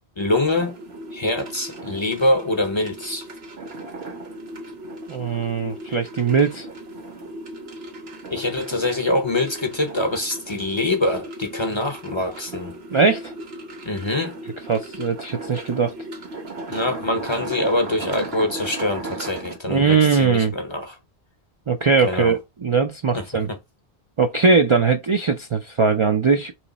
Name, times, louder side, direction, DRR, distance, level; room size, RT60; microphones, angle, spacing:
voice 1, 0.2-0.7 1.1-3.3 8.3-12.8 13.8-14.4 16.7-21.0 22.0-22.4 23.1-23.6, left 2 dB, 30° left, 0.6 m, -24 dB
sound 1, 0.5-19.6, right 2 dB, 70° right, 1.2 m, -36 dB
voice 2, 5.1-6.7 12.9-13.3 14.7-15.9 19.7-20.5 21.7-23.5 24.2-26.6, right 5 dB, 50° right, 0.3 m, -20 dB
3.2 x 3.1 x 3.9 m
omnidirectional pair, 1.1 m